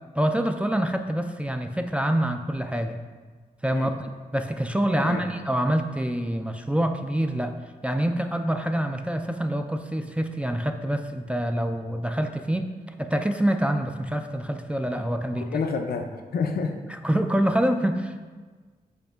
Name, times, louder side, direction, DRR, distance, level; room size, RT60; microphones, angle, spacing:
voice 1, 0.1-3.0 3.6-4.1 4.3-7.6 7.8-12.7 13.0-15.5 16.9-18.2, right 1 dB, 5° right, 5 dB, 0.3 m, -26 dB
voice 2, 15.4-16.7, left 5 dB, 70° left, 5 dB, 0.4 m, -29 dB
8.2 x 2.9 x 2.3 m, 1.4 s
cardioid pair, 55°, 16 cm